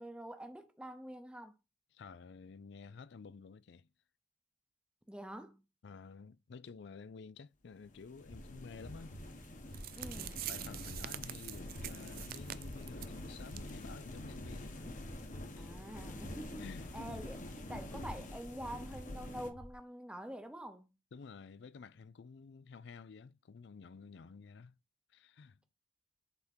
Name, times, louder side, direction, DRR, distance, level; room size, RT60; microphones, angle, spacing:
voice 1, 0.0-1.5 5.1-5.6 10.0-10.5 15.6-16.7 16.9-20.9, equal, 5° right, 0.8 m, -46 dB
voice 2, 1.9-3.9 5.8-9.2 10.5-14.7 15.5-15.7 16.6-16.9 21.1-24.7 25.1-25.6, left 5 dB, 60° left, 0.4 m, -51 dB
sound 1, 7.8-19.5, left 1 dB, 40° left, 1.2 m, -47 dB
sound 2, 8.3-19.7, equal, 80° left, 2.9 m, -52 dB
sound 3, 9.4-9.5 9.7-13.2 13.5-13.7 14.0-14.1 14.6-14.7, right 14 dB, 50° right, 0.4 m, -45 dB
8.0 x 3.7 x 4.3 m
head